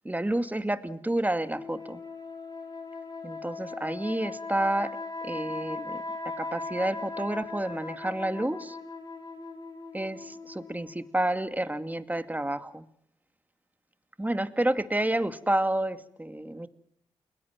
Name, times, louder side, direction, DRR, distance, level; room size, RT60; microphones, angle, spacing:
voice 1, 0.0-2.0 3.2-6.0 6.4-8.8 9.9-12.8 14.2-16.7, right 1 dB, 15° right, 10 dB, 2.3 m, -30 dB
sound 1, 1.5-11.2, left 3 dB, 30° left, 7.9 m, -39 dB
29.5 x 21.0 x 7.5 m, 0.68 s
supercardioid pair, 45°, 12 cm